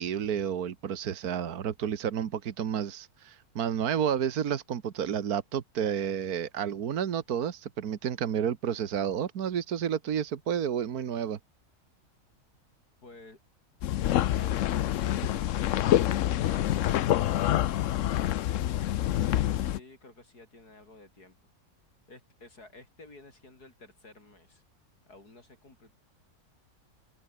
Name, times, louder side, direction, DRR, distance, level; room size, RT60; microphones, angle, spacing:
voice 1, 0.0-11.4, right 8 dB, 75° right, 1.7 m, -30 dB
voice 2, 13.0-13.4 14.0-15.8 19.6-21.5 22.1-24.6 25.1-25.9, left 2 dB, 90° left, 6.2 m, -52 dB
sound 1, 13.8-19.8, left 12 dB, 65° left, 0.9 m, -26 dB
omnidirectional pair, 1.6 m